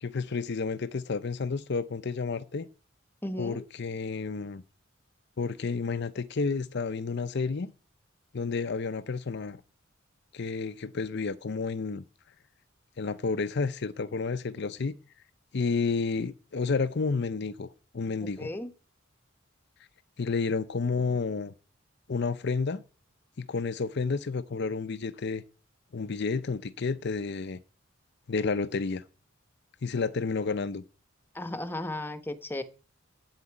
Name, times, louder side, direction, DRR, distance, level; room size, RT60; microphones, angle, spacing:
voice 1, 0.0-2.7 3.4-4.6 5.4-7.7 8.3-9.6 10.3-12.0 13.0-15.0 15.5-17.7 17.9-18.5 20.2-21.5 22.1-22.8 23.4-25.4 25.9-27.6 28.3-29.0 29.8-30.8, left 4 dB, 55° left, 0.6 m, -30 dB
voice 2, 3.2-3.7 18.4-18.7 31.3-32.6, left 1 dB, 10° left, 1.0 m, -35 dB
8.8 x 8.1 x 8.6 m
head